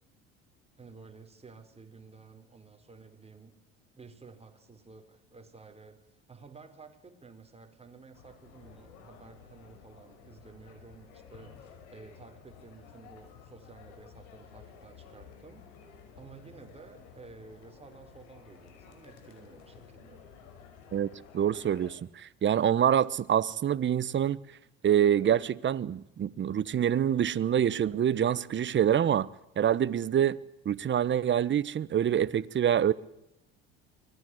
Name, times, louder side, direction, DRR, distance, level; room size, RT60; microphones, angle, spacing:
voice 1, 0.8-3.5 3.9-6.0 6.3-15.6 16.1-20.2, right 4 dB, 20° right, 4.8 m, -52 dB
sound 1, 8.1-21.9, left 7 dB, 75° left, 5.7 m, -53 dB
voice 2, 21.3-24.4 24.8-29.3 29.6-30.4 30.6-32.9, right 9 dB, 40° right, 1.1 m, -26 dB
24.0 x 19.0 x 8.0 m
hypercardioid pair, 75°, 31 cm